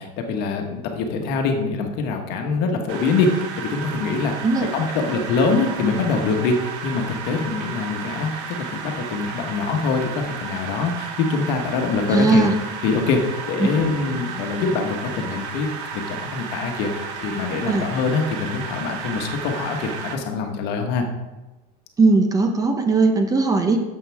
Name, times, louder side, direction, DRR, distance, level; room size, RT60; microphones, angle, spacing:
voice 1, 0.0-12.4 12.8-13.2 13.5-16.9 17.2-21.1, left 4 dB, 55° left, 4 dB, 1.5 m, -24 dB
sound 1, 2.9-20.2, right 6 dB, 60° right, 1.5 m, -33 dB
voice 2, 12.1-12.5 17.7-17.9 22.0-23.8, right 3 dB, 15° right, 5 dB, 0.9 m, -18 dB
10.5 x 7.5 x 3.5 m, 1.1 s
supercardioid pair, 140°, 20 cm